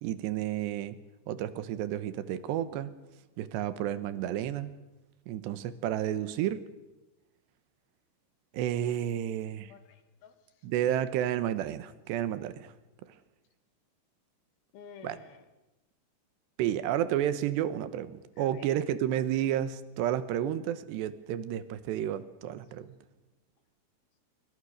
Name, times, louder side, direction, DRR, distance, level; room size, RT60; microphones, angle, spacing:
voice 1, 0.0-1.0 1.3-2.9 3.4-4.7 5.3-6.6 8.5-9.7 10.6-12.7 15.0-15.2 16.6-22.9, right 11 dB, 85° right, 14 dB, 3.3 m, -31 dB
voice 2, 9.7-10.7 14.7-15.5 18.4-18.7, left 7 dB, 65° left, 9 dB, 3.3 m, -52 dB
26.0 x 23.5 x 6.5 m, 1.0 s
omnidirectional pair, 4.9 m